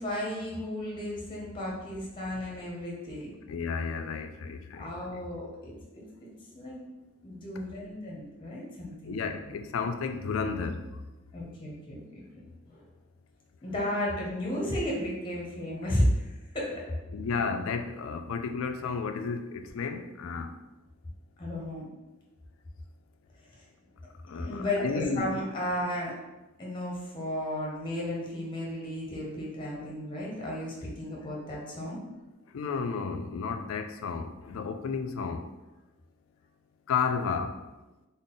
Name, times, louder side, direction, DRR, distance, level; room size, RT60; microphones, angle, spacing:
voice 1, 0.0-3.4 4.7-6.8 7.2-9.2 11.3-12.2 12.7-12.8 13.6-16.9 21.4-21.9 24.3-26.1 26.6-32.0, left 1 dB, 25° left, -3 dB, 0.7 m, -33 dB
voice 2, 3.5-5.2 7.6-7.7 9.0-10.8 17.1-20.5 24.2-25.4 32.5-35.5 36.9-37.6, left 5 dB, 80° left, 7 dB, 0.4 m, -32 dB
3.7 x 2.0 x 3.8 m, 1.1 s
head